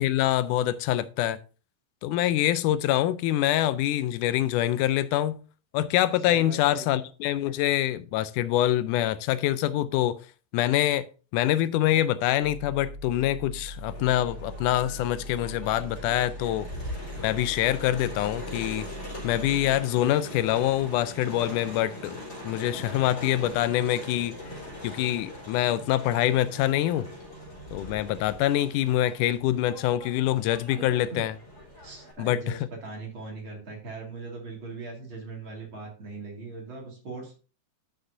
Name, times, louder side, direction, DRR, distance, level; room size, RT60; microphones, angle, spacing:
voice 1, 0.0-1.4 2.0-5.4 5.7-10.2 10.5-11.1 11.3-16.7 17.2-18.9 19.2-24.3 24.8-27.1 27.7-31.3 32.2-32.6, left 13 dB, 85° left, 2.1 m, -25 dB
voice 2, 6.3-6.9 31.1-31.3 31.8-37.3, right 3 dB, 40° right, 2.8 m, -40 dB
sound 1, 12.4-19.8, equal, 85° right, 7.2 m, -41 dB
Crowd, 13.9-32.1, left 1 dB, 25° left, 4.1 m, -41 dB
13.0 x 6.1 x 2.7 m
omnidirectional pair, 3.6 m